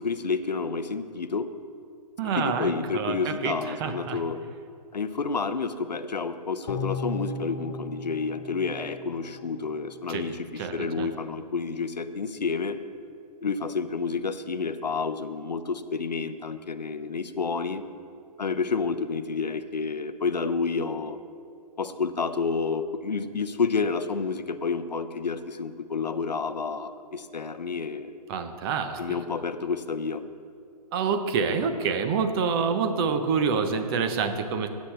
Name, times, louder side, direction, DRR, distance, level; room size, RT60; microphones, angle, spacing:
voice 1, 0.0-1.5 2.2-4.4 4.9-12.8 13.4-17.8 18.4-21.2 21.8-28.1 29.0-30.2, left 4 dB, 85° left, 11 dB, 0.7 m, -29 dB
voice 2, 2.2-3.5 3.8-4.2 10.1-11.1 28.3-29.2 30.9-34.7, right 5 dB, 35° right, 8 dB, 0.9 m, -27 dB
sound 1, 6.7-10.0 10.4-10.5, left 3 dB, 50° left, 1.2 m, -36 dB
16.0 x 8.3 x 3.4 m, 2.3 s
figure-of-eight pair, 125°, 21 cm